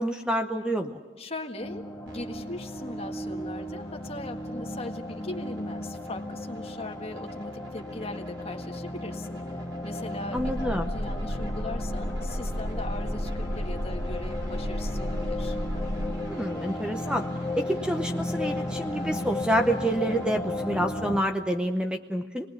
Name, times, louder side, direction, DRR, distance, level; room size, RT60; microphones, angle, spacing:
voice 1, 0.0-1.0 10.3-10.9 16.2-17.2 17.6-22.5, right 1 dB, 5° right, 6 dB, 0.7 m, -28 dB
voice 2, 1.2-9.4 9.8-15.6, left 2 dB, 35° left, 3 dB, 1.8 m, -39 dB
sound 1, 1.6-21.2, left 1 dB, 10° left, 1.7 m, -35 dB
sound 2, 2.1-20.2, equal, 75° right, 7.1 m, -48 dB
sound 3, 10.4-16.1, equal, 90° right, 1.5 m, -32 dB
28.0 x 20.0 x 7.2 m, 1.4 s
head